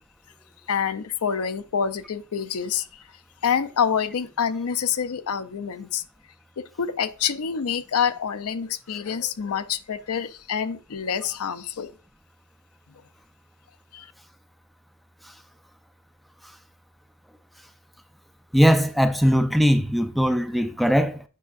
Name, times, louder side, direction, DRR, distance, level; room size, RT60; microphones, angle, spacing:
voice 1, 0.7-3.0 3.4-6.0 6.8-11.9 12.9-13.0 13.9-14.1, left 7 dB, 85° left, 0.6 m, -27 dB
voice 2, 18.5-21.2, equal, ahead, 0.3 m, -20 dB
8.3 x 5.5 x 2.4 m
head